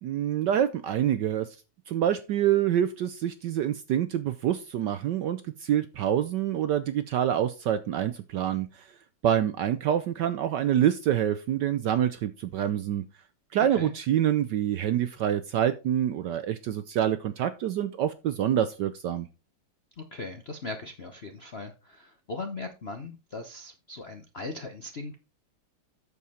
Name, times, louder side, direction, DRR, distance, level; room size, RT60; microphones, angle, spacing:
voice 1, 0.0-1.6 1.9-8.9 9.2-13.0 13.5-19.3, right 10 dB, 70° right, 1.0 m, -26 dB
voice 2, 20.0-25.2, left 3 dB, 55° left, 0.7 m, -39 dB
8.4 x 7.1 x 4.2 m
omnidirectional pair, 2.4 m